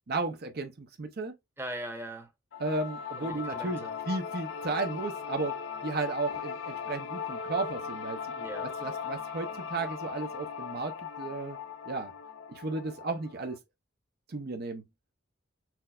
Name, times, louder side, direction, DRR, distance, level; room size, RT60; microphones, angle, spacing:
voice 1, 0.1-1.3 2.6-5.6 5.8-8.2 8.8-11.6 11.9-12.1 12.5-13.6 14.3-14.8, right 3 dB, 55° right, 0.7 m, -34 dB
voice 2, 1.6-2.3 3.2-4.0 8.3-8.7, right 1 dB, 10° right, 0.9 m, -40 dB
sound 1, 2.5-13.6, left 6 dB, 80° left, 0.5 m, -38 dB
5.9 x 2.2 x 2.4 m
head